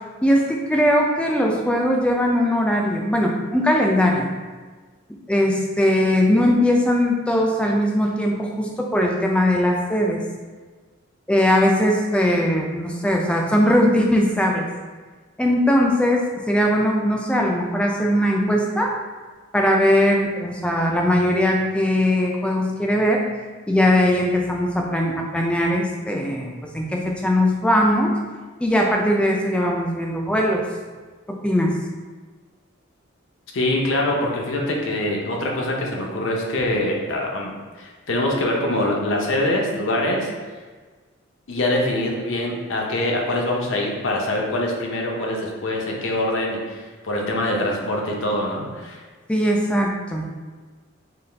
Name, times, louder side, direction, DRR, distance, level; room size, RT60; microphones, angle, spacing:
voice 1, 0.2-4.3 5.3-10.2 11.3-14.7 15.4-18.9 19.5-23.3 23.7-28.1 28.6-30.6 31.3-31.7 49.3-50.2, equal, 5° left, 0 dB, 0.3 m, -20 dB
voice 2, 33.5-40.3 41.5-46.8 47.0-49.0, left 1 dB, 70° left, -1 dB, 0.6 m, -24 dB
3.9 x 2.4 x 3.3 m, 1.4 s
head